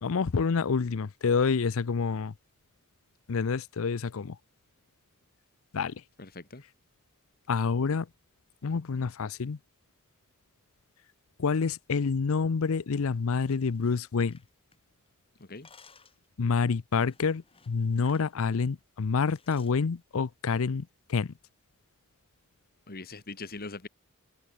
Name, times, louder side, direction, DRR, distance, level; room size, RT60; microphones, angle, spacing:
voice 1, 0.0-2.3 3.3-4.4 5.7-5.9 7.5-8.1 8.6-9.6 11.4-14.4 16.4-21.3, left 5 dB, 65° left, 0.6 m, -28 dB
voice 2, 6.2-6.6 15.4-15.7 22.9-23.9, left 3 dB, 45° left, 1.7 m, -41 dB
sound 1, 13.2-15.1 15.4-16.3 17.0-18.3 18.6-18.8 19.2-19.8, left 5 dB, 25° left, 5.9 m, -58 dB
head